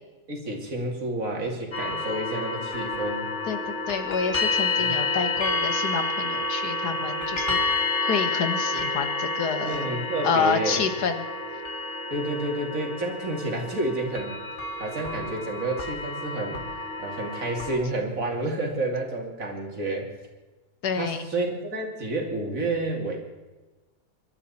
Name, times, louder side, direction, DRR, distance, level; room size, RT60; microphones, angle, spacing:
voice 1, 0.3-3.3 4.8-5.1 9.6-10.8 12.1-14.4 14.8-16.7 17.0-20.1 21.0-23.2, right 2 dB, 55° right, 1 dB, 3.0 m, -30 dB
sound 1, 1.7-17.8, left 3 dB, 45° left, 2.4 m, -29 dB
voice 2, 3.5-9.8 10.2-11.2 20.8-21.3, left 5 dB, 85° left, 8 dB, 1.9 m, -28 dB
24.5 x 12.5 x 4.3 m, 1.2 s
omnidirectional pair, 1.7 m